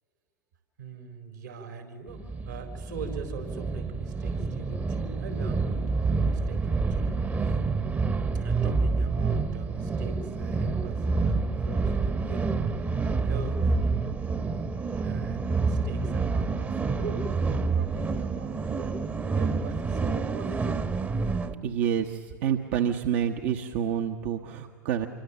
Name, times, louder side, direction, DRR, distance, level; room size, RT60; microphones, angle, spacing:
voice 1, 0.8-7.6 8.3-14.5 15.0-17.3 17.7-19.0 19.3-20.8, right 4 dB, 75° right, 5 dB, 4.2 m, -42 dB
sound 1, 2.1-21.5, right 4 dB, 20° right, 1.1 m, -28 dB
voice 2, 21.6-25.1, right 9 dB, 50° right, 4 dB, 1.1 m, -28 dB
26.5 x 23.5 x 7.0 m, 2.1 s
figure-of-eight pair, 85°, 10 cm